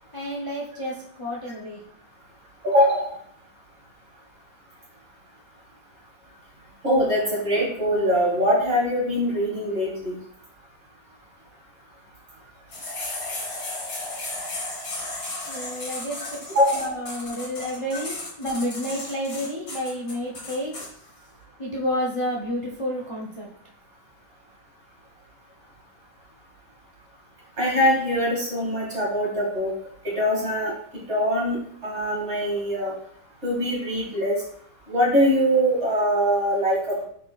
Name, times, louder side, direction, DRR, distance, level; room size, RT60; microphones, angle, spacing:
voice 1, 0.1-1.8 12.7-12.9 15.5-16.3 16.7-20.7 21.6-23.5, equal, 30° left, -3 dB, 0.6 m, -30 dB
voice 2, 2.6-3.1 6.8-10.1 16.5-16.9 27.6-29.7 30.0-30.7 31.1-32.9 33.4-34.3 34.9-37.0, equal, 35° right, -4 dB, 2.6 m, -22 dB
sound 1, 12.7-20.9, left 2 dB, 85° left, 3.3 m, -34 dB
9.6 x 4.3 x 2.4 m, 0.64 s
omnidirectional pair, 2.0 m